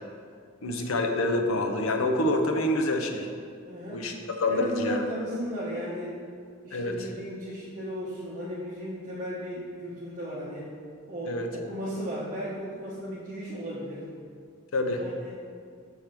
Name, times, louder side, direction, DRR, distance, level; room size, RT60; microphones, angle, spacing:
voice 1, 0.6-3.3 3.9-4.1 4.4-5.0 6.7-6.9 11.3-11.5 14.7-15.0, left 1 dB, 85° left, 4 dB, 0.7 m, -26 dB
voice 2, 3.6-4.1 4.5-6.1 6.6-10.7 11.1-14.1 15.0-15.4, equal, 40° right, -7 dB, 0.9 m, -35 dB
6.3 x 3.4 x 5.9 m, 2.2 s
head